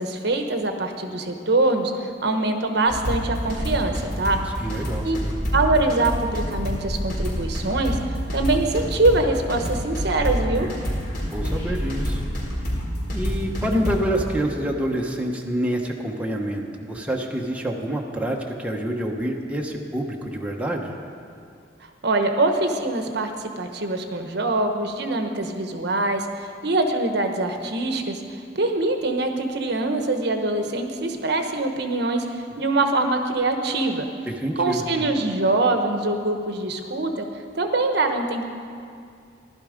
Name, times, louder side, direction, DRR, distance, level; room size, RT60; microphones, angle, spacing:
voice 1, 0.0-4.4 5.0-5.2 5.5-10.7 22.0-34.1 34.6-37.3 37.5-38.4, right 2 dB, 65° right, 5 dB, 1.0 m, -24 dB
sound 1, 2.9-14.3, equal, 55° left, 4.4 m, -27 dB
voice 2, 4.6-5.4 11.3-12.2 13.1-20.9 34.3-35.1, right 1 dB, 5° right, 0 dB, 1.1 m, -27 dB
15.5 x 11.5 x 5.1 m, 2.4 s
head